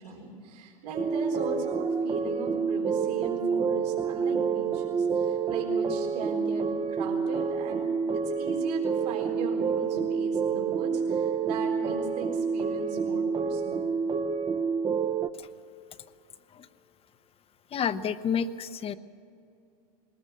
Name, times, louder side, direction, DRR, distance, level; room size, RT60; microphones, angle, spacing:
voice 1, 0.0-7.9 8.1-13.9, right 3 dB, 80° right, 0 dB, 3.9 m, -38 dB
sound 1, 0.9-15.3, right 6 dB, 25° right, 0.8 m, -28 dB
voice 2, 17.7-19.0, left 7 dB, 30° left, 13 dB, 0.8 m, -30 dB
21.0 x 19.5 x 6.6 m, 2.6 s
supercardioid pair, 115°, 20 cm